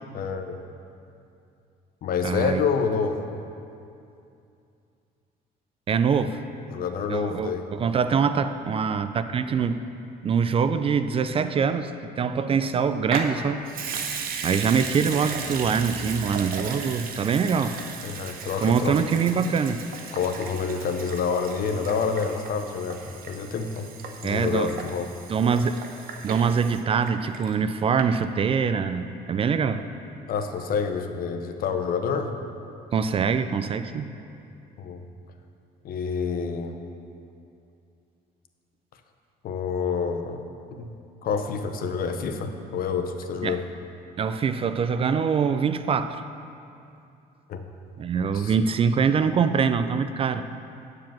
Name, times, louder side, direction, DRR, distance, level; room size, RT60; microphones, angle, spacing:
voice 1, 0.1-0.6 2.0-3.2 6.7-7.6 18.0-19.1 20.1-23.9 24.2-25.1 30.3-32.3 34.8-35.0 35.8-36.8 39.4-40.4 40.7-40.9 41.2-43.6 47.5-47.6 48.3-48.5, left 5 dB, 60° left, 7 dB, 0.8 m, -28 dB
voice 2, 2.2-2.6 5.9-6.4 7.1-9.8 10.2-13.7 14.4-17.8 18.6-19.8 24.2-24.8 25.3-25.8 26.2-29.8 32.9-34.1 43.4-43.6 44.2-46.2 48.0-50.4, right 6 dB, 35° right, 11 dB, 0.4 m, -24 dB
Water tap faucet / Sink (filling or washing) / Liquid, 13.1-27.7 28.0-28.1, right 5 dB, 60° right, 0.9 m, -36 dB
9.3 x 4.8 x 7.4 m, 2.6 s
cardioid pair, 110°, 17 cm